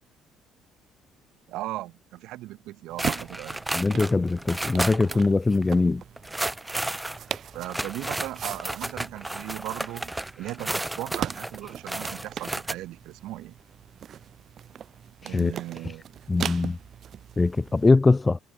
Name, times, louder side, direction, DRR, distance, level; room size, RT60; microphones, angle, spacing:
voice 1, 1.5-3.6 7.5-13.6 15.2-16.0, right 16 dB, 75° right, 6.4 m, -37 dB
sound 1, 2.9-17.9, right 9 dB, 50° right, 4.4 m, -40 dB
sound 2, 3.0-5.3 5.5-5.6 6.2-12.7, right 1 dB, 10° right, 3.1 m, -32 dB
voice 2, 3.7-6.0 15.3-15.5 16.3-16.8 17.4-18.4, left 3 dB, 20° left, 0.6 m, -22 dB
cardioid pair, 95°, 0 cm